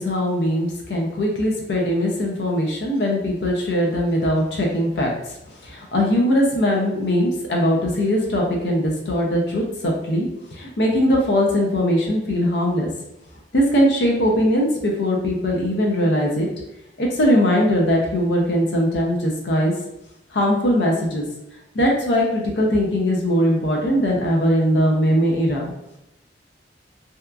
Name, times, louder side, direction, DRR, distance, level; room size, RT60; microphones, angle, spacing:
voice 1, 0.0-5.4 5.6-12.9 13.5-16.5 17.0-19.7 20.3-21.2 21.7-25.7, equal, 75° left, -1 dB, 0.5 m, -20 dB
2.8 x 2.3 x 2.3 m, 0.89 s
head